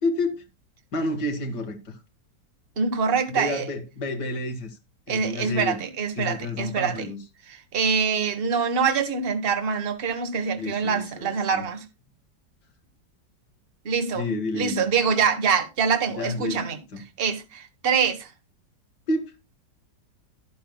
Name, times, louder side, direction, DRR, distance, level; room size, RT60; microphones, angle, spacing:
voice 1, 0.0-0.4 0.9-2.0 3.3-4.8 5.1-5.8 6.2-7.2 10.6-11.7 14.1-14.9 16.1-16.6 16.9-17.0 19.1-19.3, left 2 dB, 65° left, 2.4 m, -30 dB
voice 2, 2.8-3.6 5.1-7.1 7.7-11.8 13.8-16.8 17.2-18.3, right 6 dB, 35° right, 1.5 m, -25 dB
12.0 x 11.5 x 2.3 m
omnidirectional pair, 2.0 m